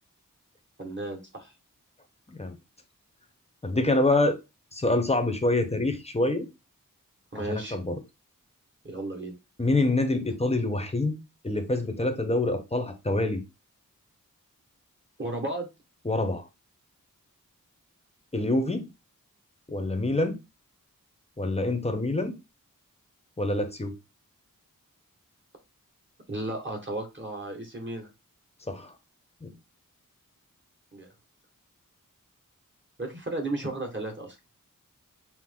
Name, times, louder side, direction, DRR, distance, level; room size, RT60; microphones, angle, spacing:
voice 1, 0.8-1.5 7.3-7.8 8.8-9.3 15.2-15.7 26.3-28.1 30.9-31.1 33.0-34.4, right 2 dB, 35° right, 1.6 m, -34 dB
voice 2, 3.6-4.4 4.7-6.5 7.5-7.9 9.6-13.4 16.0-16.4 18.3-18.9 19.7-20.4 21.4-22.4 23.4-23.9 28.7-28.9 29.4-29.5, left 2 dB, 20° left, 0.9 m, -26 dB
6.0 x 2.0 x 3.7 m
wide cardioid pair, 45°, 33 cm